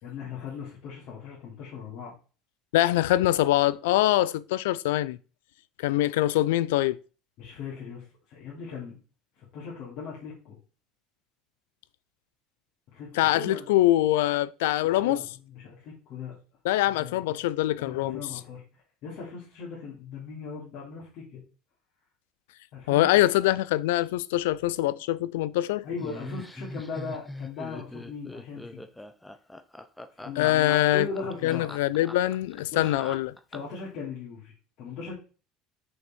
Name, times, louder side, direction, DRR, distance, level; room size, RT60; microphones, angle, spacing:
voice 1, 0.0-2.1 7.4-9.0 9.4-10.6 12.9-13.6 14.8-16.4 17.0-17.4 17.8-21.4 22.7-23.1 25.8-28.8 30.2-31.7 32.7-32.9 33.5-35.1, left 5 dB, 60° left, 3.2 m, -39 dB
voice 2, 2.7-5.2 5.8-7.0 13.1-15.2 16.6-18.2 22.9-25.8 30.4-31.1 31.4-33.3, left 15 dB, 85° left, 0.4 m, -24 dB
Laughter, 26.0-33.8, left 1 dB, 5° left, 0.8 m, -41 dB
6.5 x 5.5 x 4.5 m
supercardioid pair, 95°, 0 cm